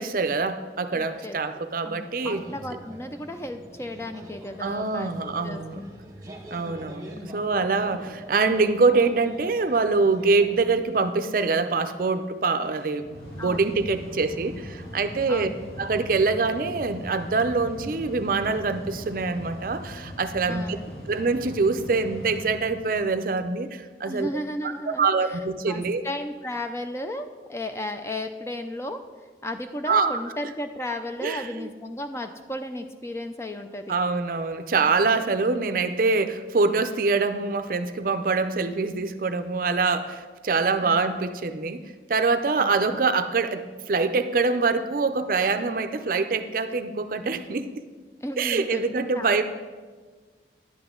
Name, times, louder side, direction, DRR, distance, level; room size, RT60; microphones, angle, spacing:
voice 1, 0.0-2.4 4.6-5.8 6.5-13.1 13.3-15.5 15.8-20.8 21.1-24.3 24.9-26.0 29.9-30.2 31.2-31.7 33.9-41.8 42.1-47.7 48.4-49.4, right 4 dB, 50° right, 9 dB, 0.5 m, -24 dB
voice 2, 0.9-1.4 1.8-5.9 7.1-7.5 13.4-13.7 15.3-15.5 20.5-20.9 24.0-29.0 29.4-33.9 40.8-41.0 42.6-43.0 48.2-49.4, left 1 dB, 15° left, 7 dB, 0.4 m, -34 dB
sound 1, 2.2-11.1, right 1 dB, 20° right, 1.0 m, -44 dB
Mechanical fan, 12.6-23.2, equal, 60° left, 1.6 m, -40 dB
10.5 x 8.1 x 3.7 m, 1.4 s
head